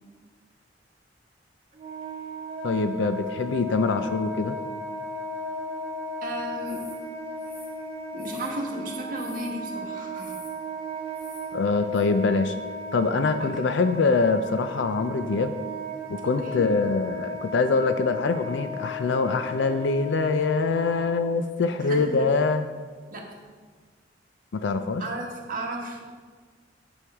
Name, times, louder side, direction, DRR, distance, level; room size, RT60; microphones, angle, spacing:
Wind instrument woodwind instrument, 1.7-21.2, equal, 35° right, 1.4 m, -36 dB
voice 1, 2.6-4.6 11.5-12.5 12.9-15.5 16.1-22.6 24.5-25.0, left 4 dB, 85° left, 9 dB, 0.4 m, -24 dB
voice 2, 6.2-6.8 8.1-10.4 13.4-13.6 16.4-16.7 21.8-22.3 23.1-23.3 25.0-26.1, right 1 dB, 50° right, -2 dB, 1.5 m, -34 dB
sound 1, 6.6-7.0 7.4-8.7 9.1-9.6 10.2-10.6 11.1-11.5 11.9-12.0, left 3 dB, 60° left, 1.8 m, -49 dB
9.8 x 6.2 x 3.6 m, 1.5 s
head